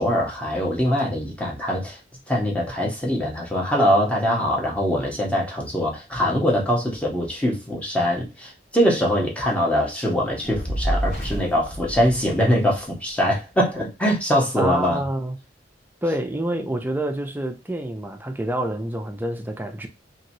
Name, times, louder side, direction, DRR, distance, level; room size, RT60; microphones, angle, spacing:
voice 1, 0.0-2.0 2.3-15.0, equal, 5° left, 0.9 m, -22 dB
Fire, 10.4-12.9, right 1 dB, 50° left, 1.6 m, -28 dB
voice 2, 14.6-15.4 16.0-19.9, right 1 dB, 10° right, 0.4 m, -27 dB
2.9 x 2.9 x 2.7 m
head